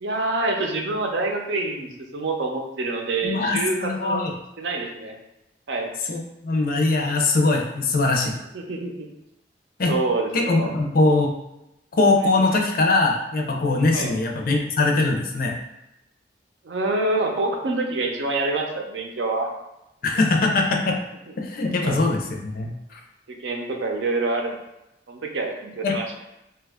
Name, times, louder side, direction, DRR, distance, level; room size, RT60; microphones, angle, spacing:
voice 1, 0.0-4.2 4.6-5.1 5.7-5.9 8.5-9.1 9.9-10.7 13.9-14.1 16.6-19.5 21.8-22.0 23.3-24.6 25.1-26.0, right 2 dB, 85° right, 2 dB, 0.5 m, -26 dB
voice 2, 3.2-4.3 6.1-8.3 9.8-9.9 10.3-11.3 12.0-15.5 20.0-21.0 21.4-23.0 25.8-26.0, left 3 dB, 55° left, 1 dB, 0.5 m, -21 dB
2.9 x 2.3 x 3.5 m, 0.89 s
head